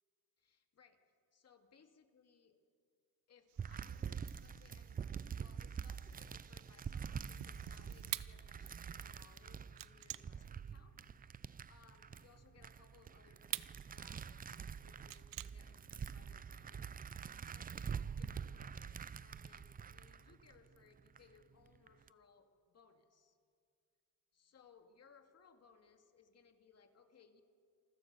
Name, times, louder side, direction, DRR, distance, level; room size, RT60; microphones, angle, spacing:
voice 1, 0.4-1.0 1.3-2.6 3.3-23.4 24.3-27.4, left 6 dB, 40° left, 6 dB, 2.4 m, -67 dB
sound 1, 3.5-8.9, right 12 dB, 80° right, 1.3 m, -63 dB
sound 2, 3.6-21.2 21.7-22.1, right 7 dB, 20° right, 0.5 m, -46 dB
sound 3, 6.5-12.0 12.5-16.0, right 14 dB, 55° right, 0.8 m, -47 dB
28.0 x 21.0 x 6.9 m, 2.3 s
cardioid pair, 105°, 40 cm